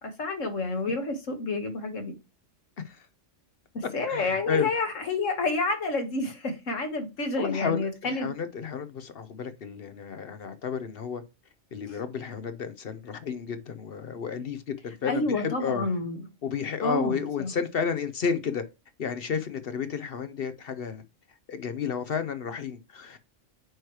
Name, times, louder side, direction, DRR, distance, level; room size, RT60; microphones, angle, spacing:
voice 1, 0.0-2.2 3.7-8.3 11.9-12.0 15.1-16.2 16.8-17.5, left 3 dB, 85° left, 1.9 m, -29 dB
voice 2, 4.1-4.7 7.4-11.2 11.7-15.9 16.4-18.6 19.0-21.0 21.5-23.2, left 6 dB, 55° left, 0.8 m, -32 dB
9.1 x 3.2 x 4.6 m
omnidirectional pair, 1.3 m